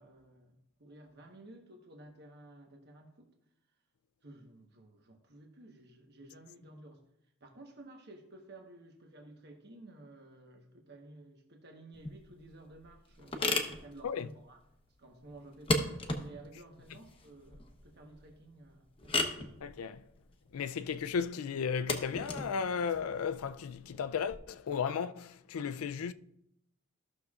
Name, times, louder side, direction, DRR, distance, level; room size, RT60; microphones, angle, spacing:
voice 1, 0.0-3.3 4.2-7.0 7.4-14.6 15.0-19.4, right 2 dB, 50° right, 1.1 m, -54 dB
sound 1, 11.9-24.3, left 2 dB, 25° left, 0.9 m, -37 dB
voice 2, 19.6-20.0 20.5-26.1, left 6 dB, 90° left, 0.4 m, -35 dB
14.5 x 6.4 x 2.4 m
head